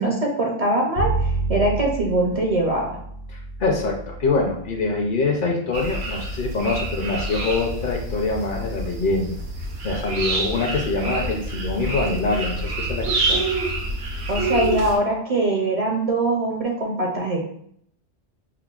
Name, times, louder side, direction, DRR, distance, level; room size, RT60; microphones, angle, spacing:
voice 1, 0.0-3.0 14.3-17.4, right 2 dB, 50° right, -1 dB, 0.5 m, -22 dB
Bowed string instrument, 0.9-7.1, right 3 dB, 90° left, 0.9 m, -30 dB
voice 2, 3.3-9.4 9.8-13.4, left 3 dB, 55° left, 1 dB, 0.7 m, -24 dB
sound 1, 5.7-15.0, right 2 dB, 75° right, 0.9 m, -27 dB
5.6 x 2.1 x 2.3 m, 0.68 s
omnidirectional pair, 1.1 m